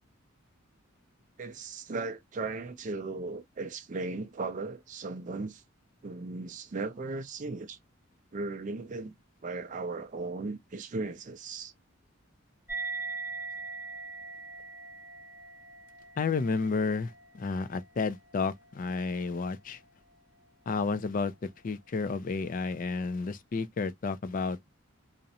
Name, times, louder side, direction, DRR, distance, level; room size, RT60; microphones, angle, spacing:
voice 1, 1.4-5.6 6.0-7.8 8.3-9.1 9.4-11.7, right 3 dB, 40° right, 0.4 m, -37 dB
sound 1, 12.7-19.6, right 4 dB, 10° right, 0.8 m, -42 dB
voice 2, 16.2-19.8 20.7-21.3 21.6-24.6, left 4 dB, 40° left, 0.3 m, -31 dB
2.5 x 2.0 x 2.7 m
head